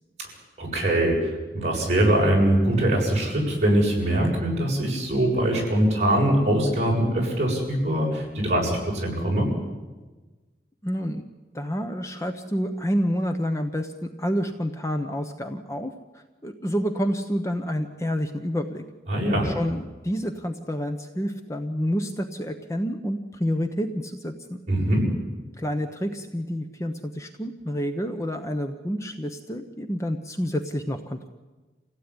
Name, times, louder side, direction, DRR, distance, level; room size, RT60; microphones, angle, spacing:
voice 1, 0.6-9.5 19.1-19.5 24.7-25.1, right 1 dB, 40° right, -2 dB, 7.6 m, -22 dB
voice 2, 10.8-11.2 11.5-15.9 16.4-18.8 19.4-24.6 25.6-31.3, equal, 15° left, 6 dB, 1.0 m, -28 dB
27.0 x 16.5 x 9.9 m, 1.3 s
head